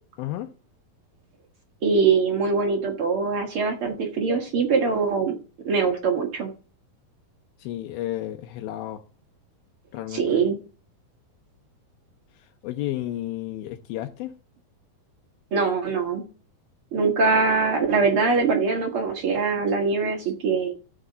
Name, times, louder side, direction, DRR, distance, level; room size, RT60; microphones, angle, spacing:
voice 1, 0.2-0.5 7.6-9.0 9.9-10.4 12.6-14.3, left 14 dB, 80° left, 2.5 m, -32 dB
voice 2, 1.8-5.3 5.6-6.5 10.1-10.6 15.5-16.2 16.9-20.7, right 4 dB, 55° right, 1.6 m, -23 dB
13.5 x 4.6 x 3.9 m
omnidirectional pair, 4.2 m